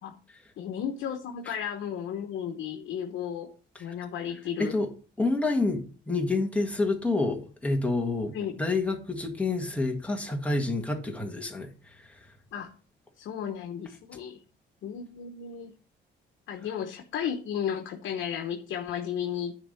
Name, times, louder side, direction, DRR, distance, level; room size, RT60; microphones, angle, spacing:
voice 1, 0.6-3.5 3.8-4.8 8.3-8.5 12.5-12.7 13.2-14.4 14.8-15.7 16.5-19.5, left 8 dB, 75° left, 1.1 m, -34 dB
voice 2, 5.2-12.3, left 3 dB, 5° left, 1.8 m, -28 dB
10.0 x 3.7 x 7.2 m
cardioid pair, 130°, 20 cm